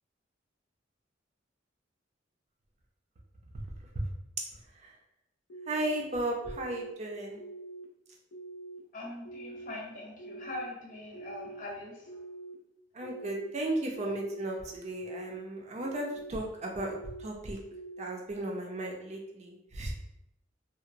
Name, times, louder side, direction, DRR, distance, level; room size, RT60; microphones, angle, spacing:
sound 1, 5.5-6.0 6.4-6.9 7.4-7.8 8.3-8.8 9.2-9.7 10.2-10.7 11.1-11.6 12.1-12.5 13.0-13.5 13.9-14.4 14.9-15.4 15.8-16.3 16.8-17.3 17.7-18.2, right 2 dB, 85° left, 0.6 m, -45 dB
voice 1, 5.7-7.4 12.9-17.6 18.0-19.9, right 1 dB, 35° right, 0 dB, 0.5 m, -35 dB
voice 2, 8.9-11.9, left 1 dB, 45° left, -3 dB, 0.7 m, -42 dB
2.8 x 2.0 x 2.5 m, 0.82 s
head